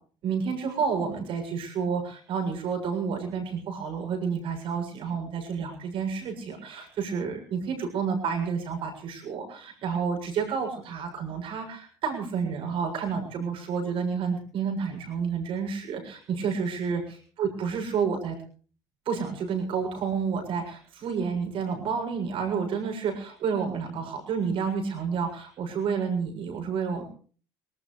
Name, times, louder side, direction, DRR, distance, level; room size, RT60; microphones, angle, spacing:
voice 1, 0.2-18.4 19.1-27.0, right 6 dB, 60° right, 3 dB, 7.1 m, -30 dB
24.0 x 19.0 x 3.3 m, 0.42 s
supercardioid pair, 85°, 10 cm